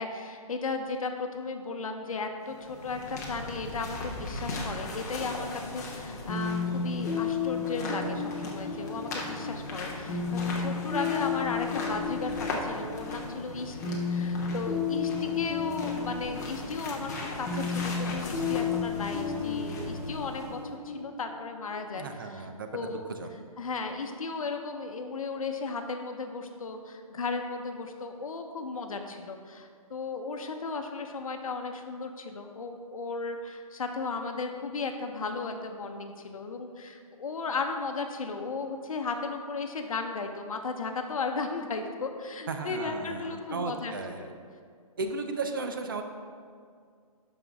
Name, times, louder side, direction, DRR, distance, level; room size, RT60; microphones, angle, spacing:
voice 1, 0.0-20.6 20.8-22.5 22.7-23.0 23.6-43.9 44.2-44.3, left 4 dB, 65° left, 5 dB, 1.0 m, -35 dB
sound 1, 2.4-20.7, left 2 dB, 30° left, 1.0 m, -39 dB
sound 2, 6.3-21.9, left 5 dB, 10° left, 0.7 m, -33 dB
voice 2, 21.9-23.3 42.5-44.3 45.0-46.0, right 3 dB, 35° right, 6 dB, 0.5 m, -35 dB
12.5 x 5.4 x 3.5 m, 2.1 s
hypercardioid pair, 175°, 19 cm